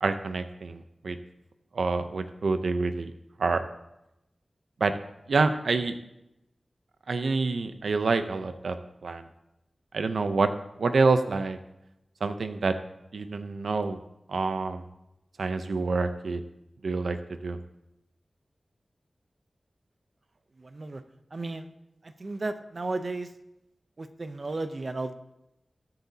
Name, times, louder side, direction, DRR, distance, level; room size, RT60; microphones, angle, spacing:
voice 1, 0.0-1.2 1.7-3.1 3.4-3.7 4.8-5.0 5.3-6.0 7.1-8.8 9.0-9.3 9.9-10.5 10.8-11.6 12.2-12.8 13.1-14.0 14.3-14.8 15.4-16.4 16.8-17.6, right 3 dB, 85° right, 9 dB, 0.6 m, -27 dB
voice 2, 21.3-21.7 22.2-23.3 24.0-25.1, right 2 dB, 45° right, 9 dB, 0.7 m, -33 dB
20.5 x 7.8 x 2.8 m, 0.88 s
wide cardioid pair, 95°, 0 cm